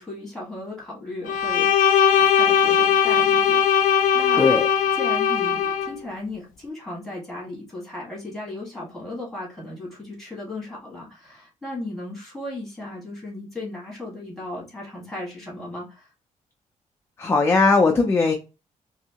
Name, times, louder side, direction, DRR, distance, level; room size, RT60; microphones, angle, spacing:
voice 1, 0.0-4.5 4.9-16.1, left 2 dB, ahead, -4 dB, 1.6 m, -36 dB
Bowed string instrument, 1.3-5.9, left 8 dB, 85° left, 0.4 m, -19 dB
voice 2, 4.4-4.7 17.2-18.3, left 3 dB, 20° left, 3 dB, 0.4 m, -18 dB
3.1 x 2.7 x 2.8 m, 0.29 s
wide cardioid pair, 165°, 13 cm